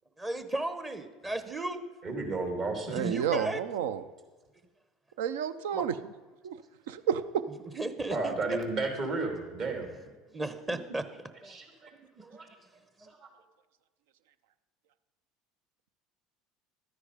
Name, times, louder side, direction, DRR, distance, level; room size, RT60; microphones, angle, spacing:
voice 1, 0.2-1.9 2.9-3.6 5.7-5.9 7.5-8.6 10.3-11.6 12.1-12.7 13.0-13.1, right 2 dB, 25° right, 1.0 m, -35 dB
voice 2, 2.0-3.0 8.1-9.9 11.5-11.9 12.2-12.5 13.0-13.3, right 3 dB, 50° right, 3.1 m, -33 dB
voice 3, 2.9-4.0 5.2-5.9 6.4-6.6 6.9-7.2, right 9 dB, 75° right, 0.6 m, -30 dB
13.0 x 9.9 x 5.0 m
hypercardioid pair, 75°, 0 cm